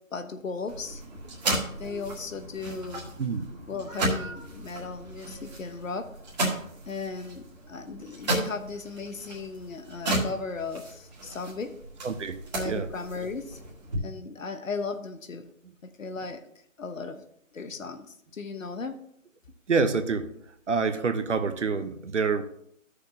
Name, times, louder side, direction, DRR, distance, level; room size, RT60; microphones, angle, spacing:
voice 1, 0.1-1.0 1.8-3.0 3.7-6.1 6.9-11.7 12.5-13.6 14.0-15.5 15.8-16.4 16.8-17.2 17.5-18.1 18.3-19.0, left 4 dB, 70° left, 9 dB, 1.2 m, -36 dB
sound 1, 0.7-14.0, right 2 dB, 30° right, 1.9 m, -34 dB
voice 2, 3.2-3.6 12.0-12.4 12.6-12.9 19.7-20.3 20.7-22.4, right 5 dB, 60° right, 9 dB, 1.0 m, -27 dB
13.5 x 6.5 x 2.9 m, 0.68 s
hypercardioid pair, 170°, 41 cm